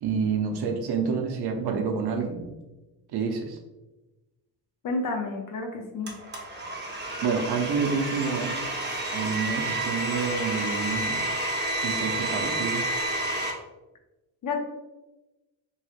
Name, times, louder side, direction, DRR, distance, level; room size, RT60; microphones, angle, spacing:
voice 1, 0.0-2.5 3.1-3.6 7.2-8.6 9.1-11.2 11.8-12.8, right 5 dB, 60° right, 3 dB, 0.6 m, -28 dB
voice 2, 4.8-6.1 14.4-14.6, left 3 dB, 50° left, 3 dB, 0.6 m, -30 dB
Domestic sounds home sounds, 6.1-13.5, right 1 dB, 25° right, 0.7 m, -30 dB
3.0 x 2.9 x 2.4 m, 1.1 s
cardioid pair, 100°, 43 cm